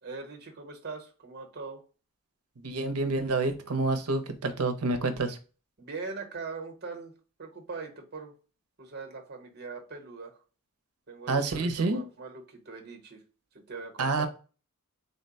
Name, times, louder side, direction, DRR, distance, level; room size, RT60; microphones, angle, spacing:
voice 1, 0.0-1.8 5.8-7.1 7.4-8.3 8.8-10.4 11.1-13.2 13.7-14.3, right 4 dB, 45° right, 4 dB, 1.0 m, -41 dB
voice 2, 2.6-5.4 11.3-12.0 14.0-14.3, right 3 dB, 80° right, 8 dB, 0.7 m, -28 dB
3.9 x 2.2 x 3.9 m, 0.35 s
head